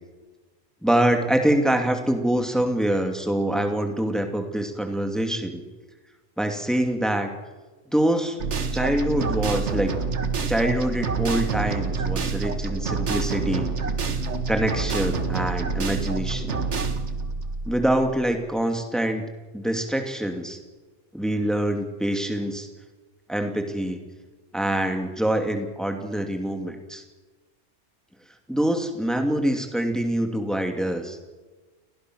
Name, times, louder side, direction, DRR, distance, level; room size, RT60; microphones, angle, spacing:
voice 1, 0.8-5.6 6.4-7.3 7.9-8.4 8.7-9.9 10.5-13.7 14.5-16.6 17.7-19.2 19.5-20.6 21.1-22.7 23.3-24.0 24.5-27.0 28.5-31.2, right 1 dB, ahead, 4 dB, 2.5 m, -25 dB
sound 1, 8.4-18.3, right 4 dB, 75° right, 1.7 m, -27 dB
29.5 x 19.5 x 6.4 m, 1.3 s
omnidirectional pair, 1.2 m